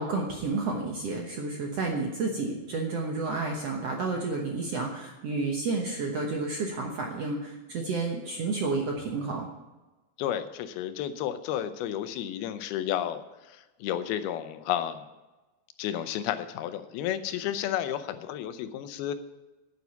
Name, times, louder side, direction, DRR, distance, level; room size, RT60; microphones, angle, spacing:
voice 1, 0.0-9.5, right 3 dB, 65° right, 1 dB, 1.6 m, -31 dB
voice 2, 10.2-13.2 13.5-15.0 15.8-19.2, left 11 dB, 85° left, 10 dB, 2.7 m, -32 dB
9.3 x 8.3 x 7.0 m, 1.1 s
omnidirectional pair, 4.3 m